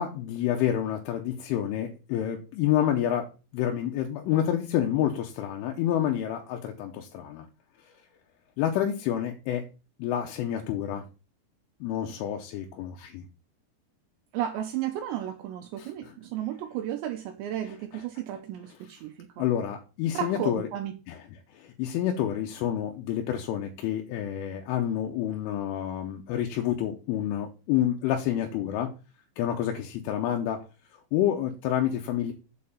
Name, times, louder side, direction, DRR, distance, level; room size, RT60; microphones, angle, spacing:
voice 1, 0.0-7.5 8.6-9.6 10.0-11.0 11.8-13.2 15.8-16.1 17.6-18.1 18.7-18.8 19.4-20.7 21.1-28.9 29.4-30.6 31.1-32.3, left 11 dB, 80° left, 3.2 m, -28 dB
voice 2, 14.3-19.4 20.1-20.9, right 11 dB, 90° right, 2.5 m, -33 dB
7.6 x 4.4 x 7.0 m
omnidirectional pair, 5.9 m